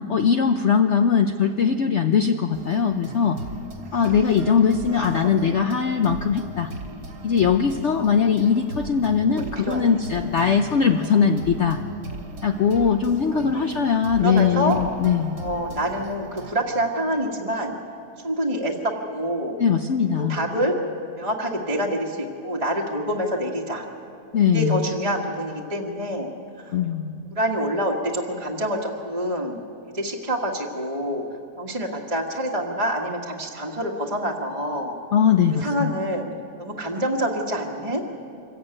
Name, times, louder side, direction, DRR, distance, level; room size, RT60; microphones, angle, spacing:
voice 1, 0.1-3.4 3.9-6.7 7.2-11.8 12.4-15.4 19.6-20.4 24.3-24.8 26.7-27.2 35.1-35.9, left 6 dB, 55° left, 6 dB, 0.8 m, -20 dB
sound 1, 2.5-16.5, right 2 dB, 75° right, 2.8 m, -39 dB
voice 2, 3.9-4.4 4.9-5.7 6.8-7.0 9.2-10.0 13.3-13.8 14.2-14.8 15.4-17.8 18.2-19.6 20.1-20.7 21.2-23.8 24.5-26.3 26.6-26.8 27.3-29.6 29.9-31.2 31.6-35.0 35.5-36.2 36.6-38.0, equal, 20° right, -2 dB, 1.5 m, -27 dB
25.0 x 15.0 x 8.9 m, 2.6 s
omnidirectional pair, 1.9 m